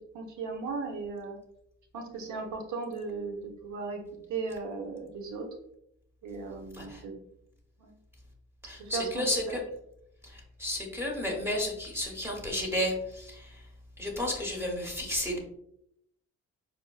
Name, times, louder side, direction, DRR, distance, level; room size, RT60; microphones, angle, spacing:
voice 1, 0.1-1.4 1.9-4.0 4.3-5.5 6.2-7.1 7.8-7.9 8.8-9.6, right 4 dB, 70° right, 2 dB, 0.8 m, -36 dB
voice 2, 8.6-9.6 10.2-13.6 14.0-15.4, left 1 dB, 10° right, -1 dB, 1.0 m, -32 dB
4.5 x 2.1 x 2.3 m, 0.75 s
cardioid pair, 90°, 30 cm